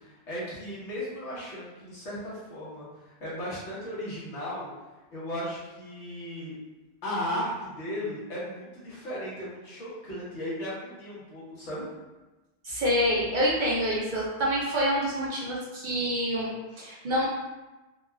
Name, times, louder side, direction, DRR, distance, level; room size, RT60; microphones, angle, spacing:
voice 1, 0.0-4.7 5.1-6.5 7.0-11.9, equal, 80° left, -8 dB, 1.4 m, -36 dB
voice 2, 12.6-17.3, equal, 55° right, -5 dB, 0.6 m, -27 dB
3.8 x 2.2 x 2.2 m, 1.1 s
omnidirectional pair, 1.2 m